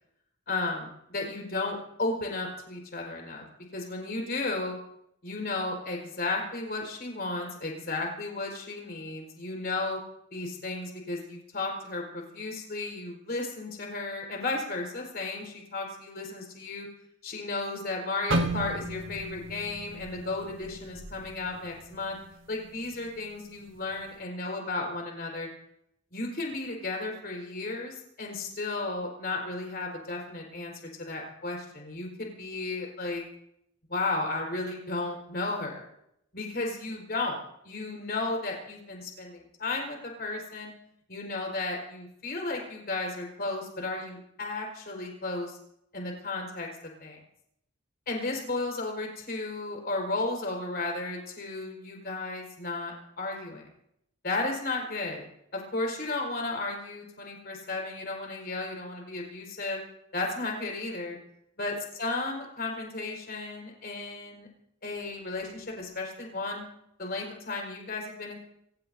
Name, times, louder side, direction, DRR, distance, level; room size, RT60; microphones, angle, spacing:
voice 1, 0.5-3.5 3.7-4.8 5.2-10.0 10.3-16.9 17.2-22.2 22.5-25.5 26.1-30.7 31.0-33.2 33.9-35.9 36.3-37.4 37.6-40.7 41.1-45.6 45.9-47.2 48.1-53.7 54.2-55.3 55.5-59.8 60.1-61.2 61.6-64.5 64.8-66.6 67.0-68.4, left 2 dB, 50° left, 0 dB, 4.6 m, -34 dB
sound 1, 18.3-22.3 22.7-23.0 23.6-23.9, right 1 dB, 65° right, 1.2 m, -34 dB
25.5 x 17.0 x 2.7 m, 0.78 s
head